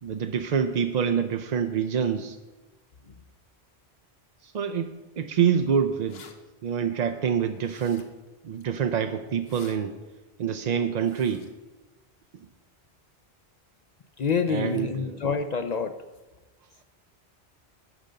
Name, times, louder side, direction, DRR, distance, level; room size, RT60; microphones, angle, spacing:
voice 1, 0.0-2.4 4.4-6.2 6.6-8.1 8.4-10.0 10.4-11.5 14.5-15.2, right 7 dB, 55° right, 7 dB, 0.5 m, -26 dB
sound 1, 6.1-6.3 7.6-8.3 9.3-9.8 11.0-11.5, left 5 dB, 70° left, 1.2 m, -50 dB
voice 2, 14.2-16.0, left 5 dB, 50° left, 8 dB, 0.5 m, -27 dB
11.0 x 5.1 x 6.6 m, 1.1 s
omnidirectional pair, 1.1 m